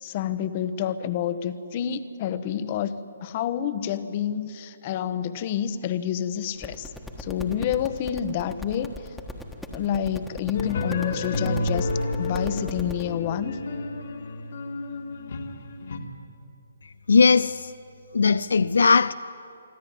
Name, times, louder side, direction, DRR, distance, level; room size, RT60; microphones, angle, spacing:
voice 1, 0.0-6.9 7.2-8.9 9.7-11.9 12.2-13.6, left 9 dB, 35° left, 1.0 m, -28 dB
sound 1, 6.6-13.0, left 1 dB, ahead, 1.4 m, -38 dB
sound 2, 10.5-16.0, left 2 dB, 60° left, 2.1 m, -30 dB
voice 2, 17.1-17.7 18.1-19.1, left 5 dB, 75° left, 0.4 m, -18 dB
25.0 x 13.5 x 9.4 m
hypercardioid pair, 145°, 0 cm